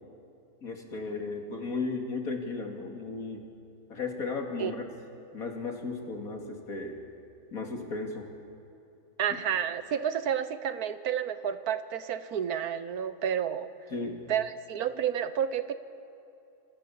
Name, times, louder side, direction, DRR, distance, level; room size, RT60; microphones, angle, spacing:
voice 1, 0.6-3.4 3.9-4.9 5.3-7.0 7.5-8.3 13.9-14.2, left 3 dB, 70° left, 2 dB, 3.0 m, -35 dB
voice 2, 9.2-13.7 14.3-15.7, right 9 dB, 80° right, 12 dB, 1.4 m, -30 dB
27.5 x 21.0 x 7.1 m, 2.7 s
omnidirectional pair, 1.6 m